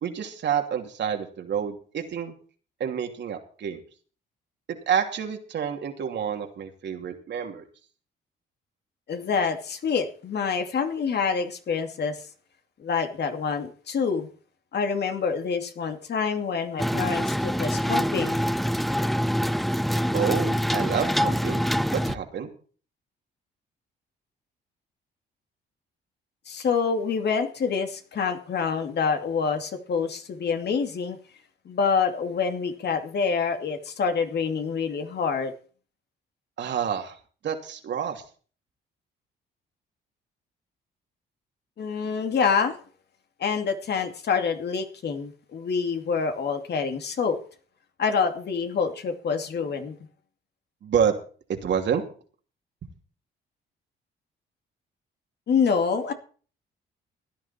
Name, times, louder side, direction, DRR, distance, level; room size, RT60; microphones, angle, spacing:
voice 1, 0.0-2.4 2.8-3.8 4.9-7.7 20.1-21.6 21.9-22.5 36.6-37.2 37.4-38.2 50.8-51.1 51.6-52.0, right 8 dB, 65° right, 4 dB, 2.9 m, -28 dB
voice 2, 9.1-12.2 12.8-14.3 14.7-18.4 26.5-31.2 31.7-35.5 41.8-42.8 43.4-47.4 48.0-50.0 55.5-56.1, left 5 dB, 55° left, 6 dB, 2.5 m, -26 dB
sound 1, 16.8-22.2, equal, ahead, 0.5 m, -25 dB
16.0 x 10.5 x 4.4 m, 0.40 s
cardioid pair, 90°, 20 cm